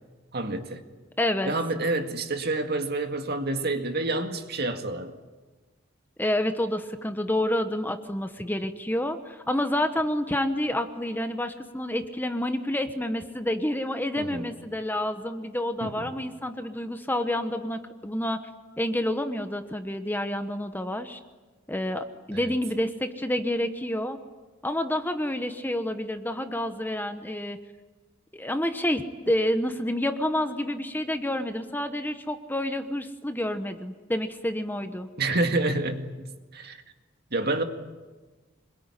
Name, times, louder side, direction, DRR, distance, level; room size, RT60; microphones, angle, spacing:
voice 1, 0.3-0.8 1.4-5.2 14.2-14.5 15.8-16.1 22.3-22.5 35.2-36.8 37.3-37.6, right 2 dB, 55° right, 6 dB, 2.0 m, -28 dB
voice 2, 1.2-1.5 6.2-18.4 18.8-21.2 21.7-24.2 24.6-27.6 28.3-35.1, left 1 dB, 10° left, 8 dB, 1.1 m, -29 dB
26.0 x 22.0 x 9.9 m, 1.3 s
head